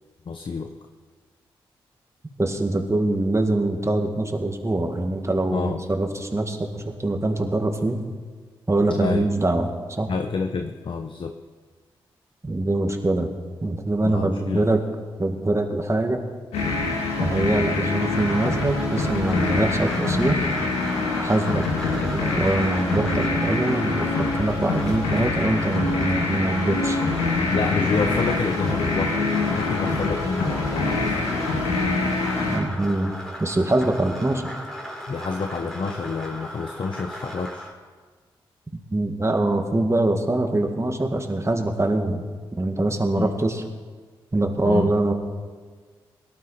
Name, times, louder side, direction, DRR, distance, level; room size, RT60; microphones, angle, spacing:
voice 1, 0.2-0.7 5.5-5.8 8.9-9.3 10.1-11.3 14.0-14.7 27.5-31.2 35.1-37.7 43.1-43.3 44.6-44.9, left 4 dB, 55° left, 5 dB, 0.9 m, -28 dB
voice 2, 2.4-8.0 8.7-9.7 10.0-10.1 12.4-13.3 13.6-14.8 15.2-16.2 17.2-20.4 21.2-21.6 21.9-27.0 32.5-33.1 33.4-34.4 38.9-42.2 42.6-43.6 44.3-45.1, right 2 dB, 25° right, 5 dB, 2.0 m, -23 dB
sound 1, 16.5-32.6, left 3 dB, 90° left, 2.1 m, -25 dB
sound 2, 18.1-37.7, equal, 5° left, 3.7 m, -36 dB
18.0 x 12.0 x 4.3 m, 1.5 s
supercardioid pair, 40°, 10 cm